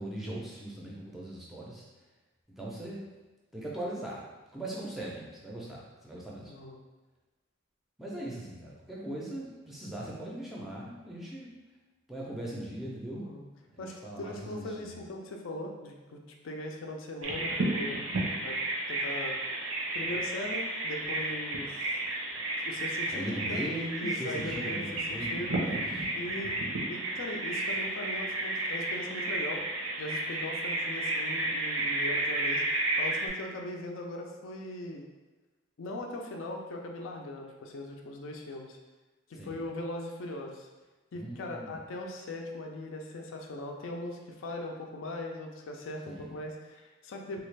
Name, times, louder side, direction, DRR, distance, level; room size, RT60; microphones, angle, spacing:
voice 1, 0.0-1.8 2.5-3.0 3.5-4.3 4.5-6.5 8.0-11.5 12.1-13.3 13.7-15.0 23.1-26.0 39.4-39.7 41.1-41.8 46.1-46.3, right 1 dB, ahead, -5 dB, 0.4 m, -39 dB
voice 2, 6.5-6.8 13.1-13.4 13.8-18.0 18.4-18.6 18.9-19.4 19.9-21.8 22.6-23.6 24.0-24.8 25.1-25.6 26.1-26.5 26.9-29.6 30.0-32.6 33.0-35.0 35.8-38.8 39.3-40.7 41.1-47.4, left 1 dB, 70° left, 1 dB, 0.4 m, -39 dB
Bird vocalization bird call bird song, 17.2-33.3, right 2 dB, 80° right, 0.6 m, -32 dB
3.1 x 2.4 x 3.2 m, 1.2 s
head